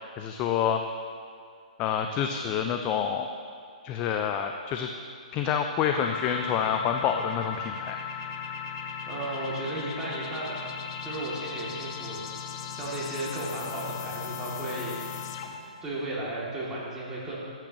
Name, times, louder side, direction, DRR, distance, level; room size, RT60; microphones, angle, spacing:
voice 1, 0.2-0.8 1.8-3.3 3.8-4.9 5.3-8.0, left 8 dB, 25° left, 5 dB, 0.4 m, -27 dB
sound 1, 6.0-15.7, left 7 dB, 45° left, 0.9 m, -37 dB
voice 2, 9.1-10.7 11.0-12.2 12.7-15.0 15.8-17.4, right 2 dB, 10° right, -7 dB, 2.3 m, -34 dB
12.0 x 8.8 x 2.9 m, 2.2 s
hypercardioid pair, 135°, 4 cm